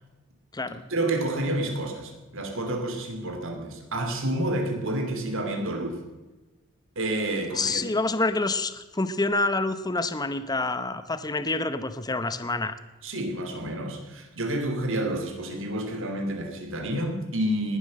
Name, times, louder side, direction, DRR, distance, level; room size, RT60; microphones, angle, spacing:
voice 1, 0.9-6.0 6.9-7.9 13.0-17.8, right 1 dB, 65° right, 5 dB, 3.0 m, -29 dB
voice 2, 7.5-12.8, left 2 dB, 20° left, 12 dB, 0.8 m, -27 dB
19.5 x 11.5 x 6.5 m, 1.2 s
head